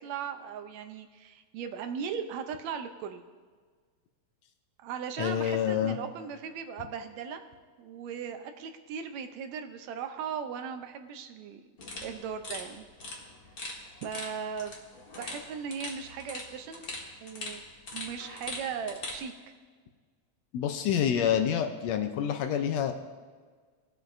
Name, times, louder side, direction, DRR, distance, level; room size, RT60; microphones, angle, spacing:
voice 1, 0.0-3.2 4.8-7.4 7.8-11.7 12.0-12.8 14.0-14.8 15.2-16.9 17.2-17.6 17.9-19.3, right 7 dB, 80° right, 7 dB, 1.8 m, -38 dB
voice 2, 5.2-6.0 20.5-22.9, left 9 dB, 80° left, 6 dB, 1.7 m, -27 dB
sound 1, 11.8-19.2, left 2 dB, 40° left, 1.4 m, -42 dB
18.5 x 7.8 x 2.5 m, 1.5 s
omnidirectional pair, 3.3 m